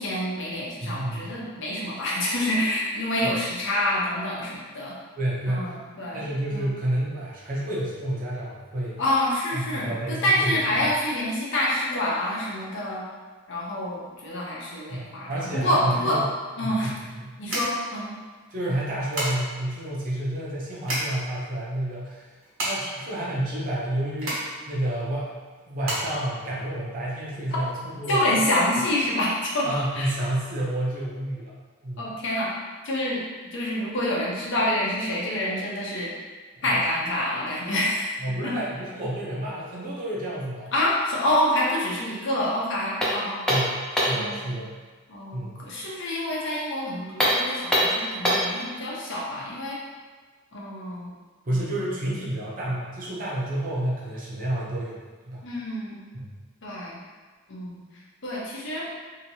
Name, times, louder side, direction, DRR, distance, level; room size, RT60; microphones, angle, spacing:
voice 1, 0.0-5.0 5.5-6.3 6.5-6.7 9.0-13.0 13.5-16.2 16.6-16.9 17.4-18.1 28.1-29.7 29.9-30.1 32.0-32.5 32.8-33.2 33.5-36.1 36.6-38.1 38.4-38.5 40.7-43.6 44.1-44.6 45.1-49.8 50.5-51.1 51.5-51.6 55.4-56.1 56.6-57.0 57.5-57.8 58.2-58.9, left 1 dB, 65° left, -5 dB, 0.8 m, -27 dB
voice 2, 0.8-1.2 3.2-3.3 5.2-5.7 6.1-9.0 9.5-10.6 14.9-16.3 16.6-17.3 18.5-22.3 22.6-25.4 25.7-28.4 29.6-31.6 31.8-32.1 36.6-36.8 38.2-40.7 43.5-44.7 45.3-45.6 51.4-55.0 55.3-55.5 56.1-56.3, right 1 dB, 45° right, -6 dB, 0.7 m, -30 dB
sound 1, 16.3-27.2, right 1 dB, 80° right, 1.2 m, -34 dB
sound 2, 43.0-44.3 47.1-48.6, equal, 5° left, 0.5 m, -23 dB
2.9 x 2.7 x 2.8 m, 1.4 s
head